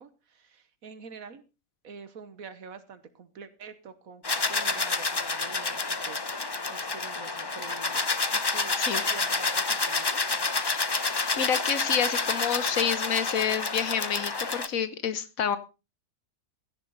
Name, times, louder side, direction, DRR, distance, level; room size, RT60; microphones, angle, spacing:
voice 1, 0.0-1.4 1.8-4.2 4.5-6.3 6.7-10.2, right 6 dB, 70° right, 12 dB, 1.5 m, -46 dB
sound 1, 4.2-14.7, left 3 dB, 25° left, 0.6 m, -29 dB
voice 2, 11.4-15.6, left 8 dB, 70° left, 13 dB, 1.5 m, -28 dB
16.0 x 11.0 x 4.0 m, 0.30 s
omnidirectional pair, 1.5 m